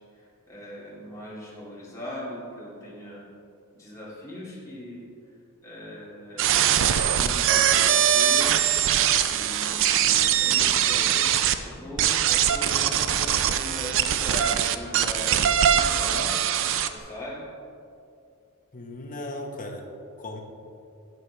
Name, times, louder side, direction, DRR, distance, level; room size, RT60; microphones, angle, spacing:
voice 1, 0.1-3.2 3.7-5.1 5.6-6.4 7.2-8.5 9.2-16.3 16.9-17.4, left 1 dB, 15° left, -7 dB, 2.2 m, -39 dB
sound 1, 6.4-11.6 12.0-16.9, right 10 dB, 60° right, 0.4 m, -22 dB
voice 2, 18.7-19.8 20.2-20.4, left 1 dB, 35° left, 0 dB, 1.0 m, -36 dB
11.0 x 7.1 x 3.3 m, 2.5 s
head